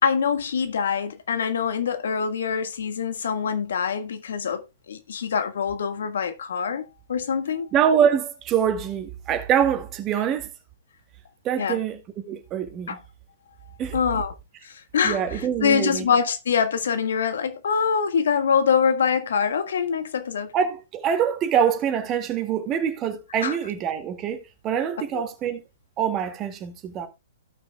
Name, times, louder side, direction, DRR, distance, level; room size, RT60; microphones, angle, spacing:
voice 1, 0.0-7.7 11.6-11.8 12.9-13.0 13.9-14.3 14.6-20.5 23.4-23.6 25.1-25.2, left 6 dB, 70° left, 1.6 m, -24 dB
voice 2, 7.7-10.5 11.4-12.0 12.3-13.0 13.8-14.0 15.0-16.1 20.5-25.6 26.0-27.1, right 8 dB, 30° right, 2.2 m, -24 dB
17.0 x 6.2 x 2.3 m
hypercardioid pair, 120°, 0 cm